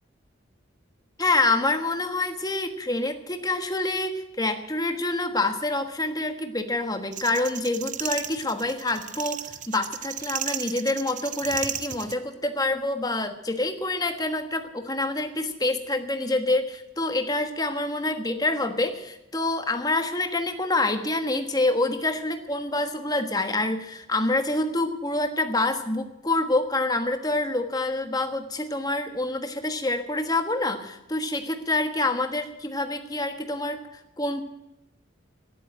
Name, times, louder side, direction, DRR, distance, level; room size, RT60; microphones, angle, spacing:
voice 1, 1.2-34.4, left 2 dB, 20° left, 6 dB, 1.4 m, -27 dB
sound 1, 7.1-12.1, right 10 dB, 40° right, 0.6 m, -34 dB
13.0 x 11.0 x 9.0 m, 0.91 s
head